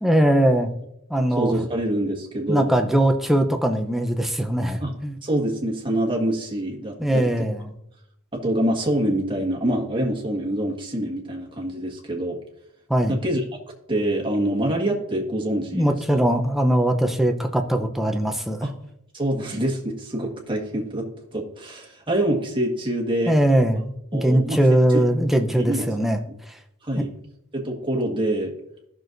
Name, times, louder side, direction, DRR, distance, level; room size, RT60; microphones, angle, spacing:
voice 1, 0.0-0.7 1.1-1.5 2.5-5.2 7.0-7.7 12.9-13.2 15.7-18.7 23.3-26.2, right 1 dB, ahead, 4 dB, 0.6 m, -21 dB
voice 2, 1.4-2.7 4.8-4.9 5.2-7.4 8.3-12.4 13.1-13.4 13.9-16.3 18.6-18.7 19.1-21.1 21.3-23.3 24.1-24.6 24.9-25.0 25.6-25.9 26.8-27.1 27.5-28.5, right 1 dB, 25° right, -1 dB, 1.5 m, -25 dB
15.0 x 6.1 x 2.6 m, 0.78 s
head